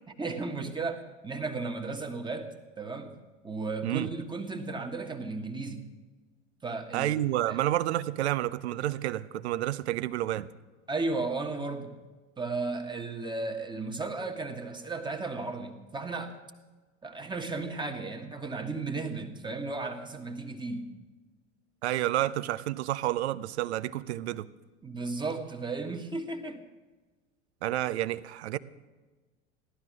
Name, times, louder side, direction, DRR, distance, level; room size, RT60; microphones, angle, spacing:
voice 1, 0.2-3.1 3.4-5.8 6.6-7.1 7.5-7.6 10.9-11.9 12.4-16.3 17.0-20.9 24.8-26.6, right 3 dB, 10° right, 4 dB, 1.5 m, -34 dB
voice 2, 6.9-10.5 21.8-24.5 27.6-28.6, right 14 dB, 60° right, 16 dB, 0.7 m, -30 dB
16.0 x 12.0 x 6.2 m, 1.3 s
figure-of-eight pair, 75°, 37 cm